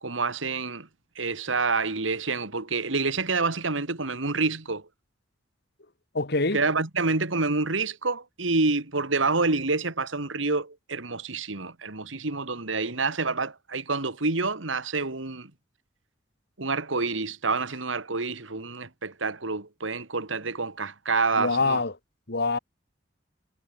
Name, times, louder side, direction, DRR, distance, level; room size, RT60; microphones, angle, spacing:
voice 1, 0.0-0.9 1.2-4.8 6.5-15.5 16.6-21.8, right 3 dB, 90° right, 2.2 m, -28 dB
voice 2, 6.1-6.6 21.4-21.9 22.3-22.6, left 3 dB, 60° left, 2.4 m, -25 dB
head